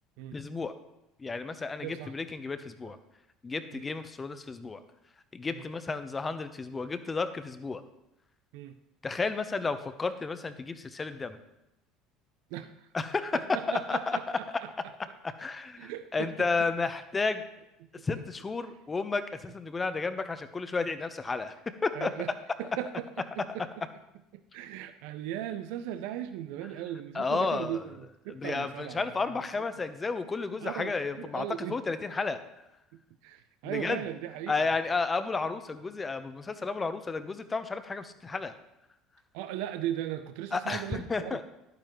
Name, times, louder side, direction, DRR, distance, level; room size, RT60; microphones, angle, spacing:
voice 1, 0.3-0.7 1.2-3.0 3.4-4.8 5.3-7.8 9.0-11.4 12.9-14.6 15.2-17.4 18.0-21.5 21.8-22.1 27.1-27.9 28.3-32.4 33.6-34.0 34.5-38.5 40.5-41.4, left 4 dB, 25° left, 10 dB, 0.9 m, -32 dB
voice 2, 1.8-2.1 3.7-3.9 5.5-5.6 8.5-8.8 12.5-12.9 13.3-14.7 15.8-16.5 18.0-18.1 21.9-22.3 22.6-23.7 24.3-29.0 30.6-31.8 32.9-34.7 39.3-41.4, right 11 dB, 70° right, 10 dB, 0.5 m, -38 dB
11.0 x 9.1 x 3.1 m, 0.90 s
hypercardioid pair, 70°, 0 cm